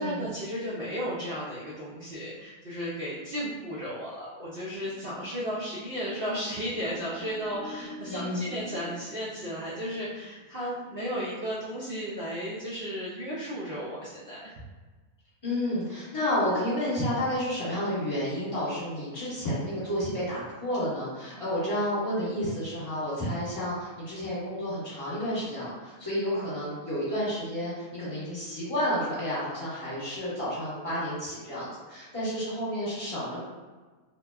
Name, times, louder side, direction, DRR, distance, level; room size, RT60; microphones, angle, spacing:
voice 1, 0.0-14.5, equal, 70° right, -8 dB, 0.5 m, -34 dB
sound 1, 4.7-11.6, equal, 90° left, 1.1 m, -46 dB
voice 2, 8.1-8.5 15.4-33.4, equal, 25° left, -10 dB, 1.1 m, -31 dB
2.8 x 2.2 x 2.3 m, 1.4 s
omnidirectional pair, 1.6 m